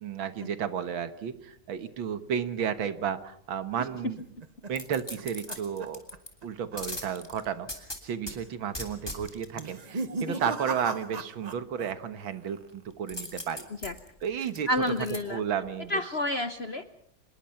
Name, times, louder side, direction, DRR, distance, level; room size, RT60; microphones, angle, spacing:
voice 1, 0.0-4.2 4.7-6.0 6.4-13.7 14.2-14.7 15.3-16.0, right 8 dB, 75° right, 11 dB, 2.1 m, -33 dB
sound 1, 3.9-6.5 6.7-7.1 7.4-7.5 8.2-8.6 9.5-11.9 12.2-12.8, right 3 dB, 50° right, 0.5 m, -38 dB
sound 2, 4.7-6.3 6.8-8.4 8.7-9.6 13.1-15.2 15.6-15.7, left 1 dB, 10° left, 2.7 m, -39 dB
voice 2, 14.7-15.4 15.9-16.8, left 1 dB, 45° left, 10 dB, 0.9 m, -29 dB
26.0 x 21.0 x 5.8 m, 0.64 s
omnidirectional pair, 2.2 m